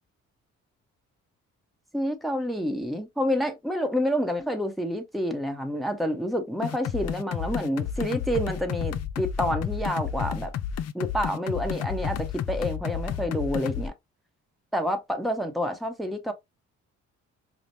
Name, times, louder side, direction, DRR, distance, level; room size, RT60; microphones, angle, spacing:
voice 1, 1.9-10.5 10.9-13.9 14.7-16.3, equal, ahead, 0.9 m, -28 dB
sound 1, 6.6-13.9, left 8 dB, 55° left, 0.5 m, -31 dB
5.0 x 2.0 x 2.8 m
cardioid pair, 90°, 30 cm